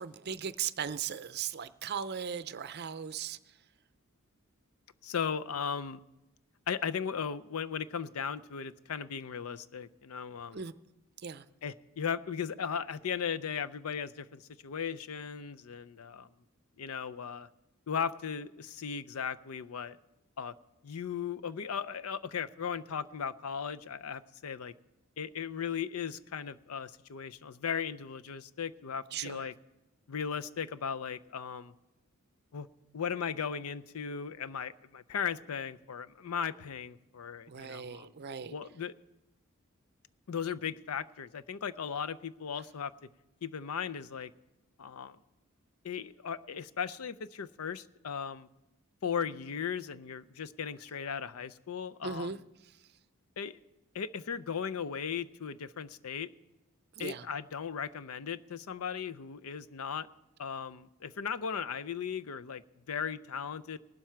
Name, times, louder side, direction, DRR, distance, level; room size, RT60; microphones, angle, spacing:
voice 1, 0.0-3.4 10.5-10.7 11.2-11.4 29.1-29.5 37.5-38.5 52.0-52.4 57.0-57.3, right 7 dB, 45° right, 14 dB, 0.5 m, -38 dB
voice 2, 5.0-6.0 6.7-10.6 11.6-16.3 16.8-17.5 17.9-20.0 20.4-20.5 20.8-24.7 25.2-29.5 30.1-31.7 32.5-32.7 32.9-38.1 38.5-38.9 40.3-42.9 43.4-44.3 44.8-45.2 45.8-48.5 49.0-52.3 53.4-53.6 53.9-56.3 57.0-60.1 60.4-62.6 62.9-63.8, left 7 dB, 80° left, 13 dB, 0.5 m, -37 dB
18.5 x 12.0 x 4.5 m, 0.98 s
head